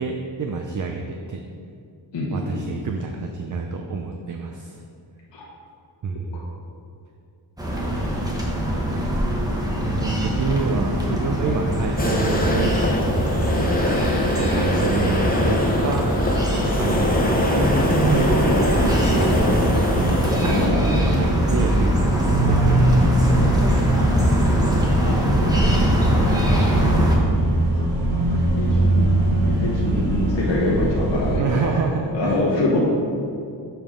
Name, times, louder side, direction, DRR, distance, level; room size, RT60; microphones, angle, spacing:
voice 1, 0.0-1.4 2.3-4.8 6.0-6.5 7.9-8.3 9.9-13.7 14.1-16.1 16.6-17.2 17.8-20.6 21.1-23.6 25.7-26.2 31.4-32.4, right 4 dB, 45° right, 3 dB, 0.5 m, -28 dB
voice 2, 2.1-2.6 5.3-5.4 6.3-6.4 13.5-13.7 20.5-21.2 24.3-25.6 27.7-31.7 32.1-32.8, left 2 dB, 80° left, -5 dB, 1.2 m, -26 dB
sound 1, 7.6-27.2, equal, 10° right, 1.0 m, -22 dB
sound 2, 12.0-20.7, left 1 dB, 20° left, 0.8 m, -23 dB
sound 3, 22.2-31.4, right 2 dB, 70° right, 1.2 m, -22 dB
6.9 x 5.4 x 3.6 m, 2.5 s
wide cardioid pair, 125°, 43 cm